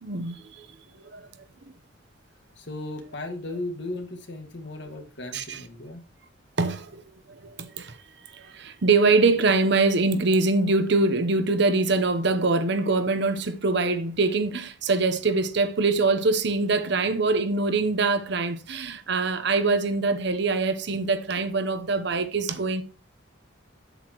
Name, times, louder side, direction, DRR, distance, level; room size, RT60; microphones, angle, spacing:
voice 1, 0.0-0.7 1.0-1.3 5.3-5.6 6.6-7.0 7.3-8.0 8.3-22.8, right 3 dB, 60° right, 0.9 m, -24 dB
voice 2, 2.6-6.0, left 2 dB, 65° left, 1.9 m, -36 dB
8.0 x 7.9 x 3.0 m
head